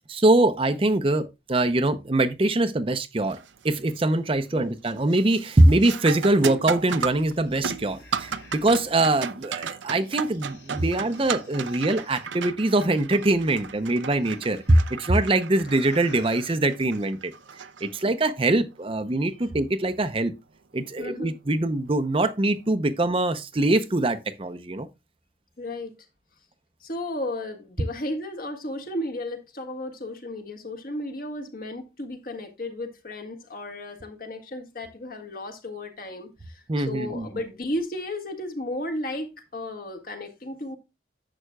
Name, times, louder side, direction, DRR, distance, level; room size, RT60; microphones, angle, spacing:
voice 1, 0.1-3.4 3.6-17.2 17.8-20.3 20.7-24.9 36.7-37.3, right 2 dB, 30° right, 0.6 m, -23 dB
sound 1, 3.3-3.7 4.1-4.5 4.9-18.4 20.9-21.0 21.8-22.0, right 6 dB, 80° right, 0.6 m, -35 dB
sound 2, 6.3-6.4 6.8-9.2 9.9-12.3 13.1-14.7 15.5-16.6, left 1 dB, 80° left, 4.5 m, -50 dB
voice 2, 21.0-21.3 25.6-25.9 26.8-40.8, left 1 dB, 50° left, 1.6 m, -34 dB
11.0 x 7.6 x 2.3 m
head